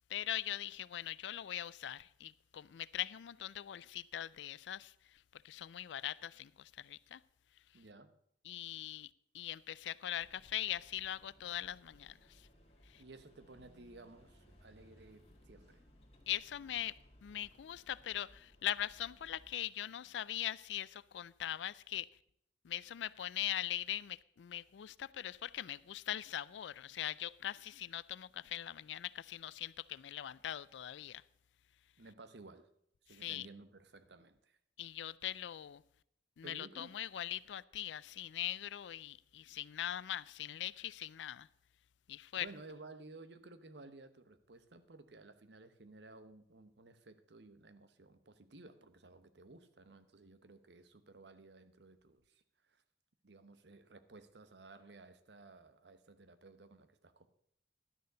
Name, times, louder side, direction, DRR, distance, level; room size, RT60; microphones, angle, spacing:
voice 1, 0.1-7.2 8.5-12.5 12.9-13.0 16.3-16.9 17.2-22.1 22.6-31.2 33.2-33.5 34.8-35.8 36.4-41.5 42.1-42.5, left 11 dB, 90° left, 0.4 m, -41 dB
voice 2, 7.7-8.1 13.0-15.8 32.0-32.7 33.0-34.6 36.4-37.0 42.4-52.8 53.2-57.3, right 3 dB, 70° right, 0.9 m, -56 dB
sound 1, 10.1-19.5, equal, 35° left, 1.9 m, -63 dB
12.0 x 6.6 x 6.7 m
head